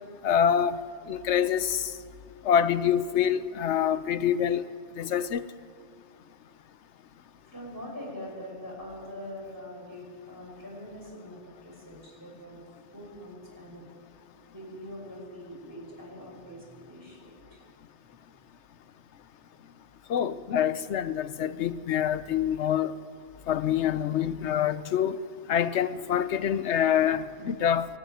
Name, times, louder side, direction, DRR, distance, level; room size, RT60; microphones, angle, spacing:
voice 1, 0.2-0.8 1.1-1.9 2.4-4.6 5.0-5.4 20.1-22.9 23.5-25.2 25.5-27.9, left 9 dB, 85° left, 1.1 m, -26 dB
voice 2, 7.5-12.6 12.9-13.9 14.5-17.6, equal, 15° right, 5.9 m, -43 dB
23.0 x 12.5 x 9.5 m
omnidirectional pair, 1.2 m